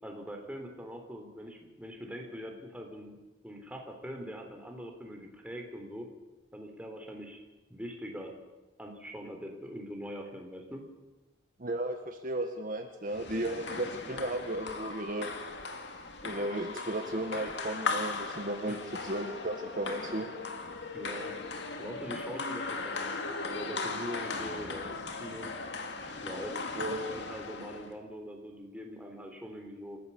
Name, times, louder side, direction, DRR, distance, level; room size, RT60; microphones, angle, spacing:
voice 1, 0.0-3.2 3.4-6.1 6.5-7.4 7.7-8.3 8.8-10.8 18.6-18.9 20.9-21.3 21.8-25.5 26.2-30.0, equal, 5° right, 2 dB, 3.6 m, -43 dB
voice 2, 11.6-15.3 16.2-20.3 26.7-27.1, right 1 dB, 45° right, 4 dB, 1.6 m, -35 dB
sound 1, 13.1-27.9, left 3 dB, 60° left, 2.3 m, -38 dB
28.0 x 15.5 x 7.1 m, 1.1 s
head